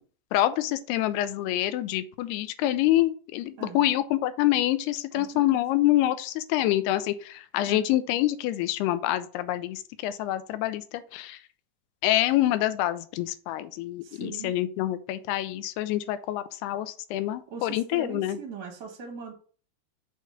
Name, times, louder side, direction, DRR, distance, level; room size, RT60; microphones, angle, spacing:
voice 1, 0.3-11.4 12.0-18.4, left 14 dB, 80° left, 12 dB, 2.6 m, -26 dB
voice 2, 3.6-3.9 5.1-5.6 7.7-7.9 14.0-14.5 17.5-19.3, right 5 dB, 55° right, 2 dB, 1.2 m, -41 dB
6.0 x 4.6 x 5.7 m, 0.41 s
omnidirectional pair, 4.7 m